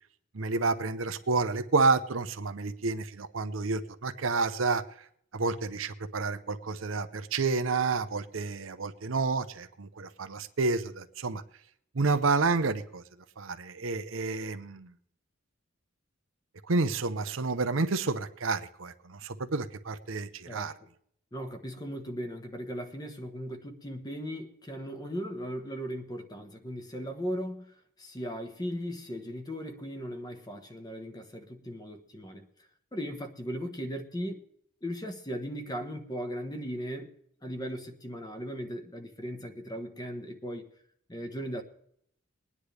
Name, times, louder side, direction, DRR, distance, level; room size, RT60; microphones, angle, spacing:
voice 1, 0.3-4.8 5.3-11.4 11.9-13.0 13.4-14.9 16.7-20.7, right 3 dB, 75° right, 10 dB, 0.8 m, -29 dB
voice 2, 21.3-27.7 28.0-32.5 32.9-34.4 34.8-37.1 37.4-40.7 41.1-41.6, equal, 20° left, 6 dB, 1.3 m, -37 dB
21.5 x 9.9 x 3.4 m, 0.67 s
head